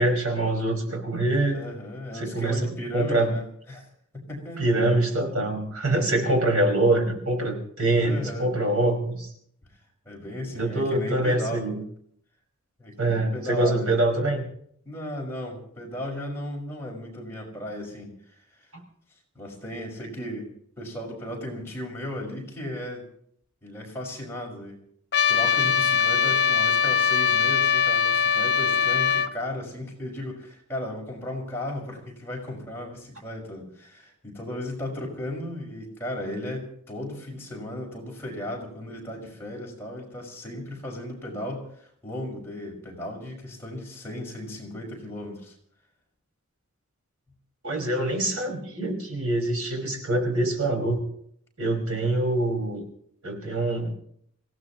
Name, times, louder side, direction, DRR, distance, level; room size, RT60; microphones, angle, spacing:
voice 1, 0.0-1.6 2.1-3.3 4.6-9.3 10.5-11.8 13.0-14.5 18.7-18.8 47.6-51.1 51.6-52.8 53.2-53.9, right 2 dB, 75° right, 2 dB, 5.3 m, -25 dB
voice 2, 1.5-3.9 4.1-4.7 5.9-6.3 8.0-8.5 10.1-11.7 12.8-13.9 14.8-18.1 19.3-20.5 20.8-23.1 23.6-24.8 25.3-45.5, left 1 dB, 10° left, -2 dB, 5.6 m, -35 dB
Trumpet, 25.1-29.3, left 7 dB, 50° left, 0.9 m, -22 dB
27.0 x 17.0 x 3.0 m, 0.66 s
head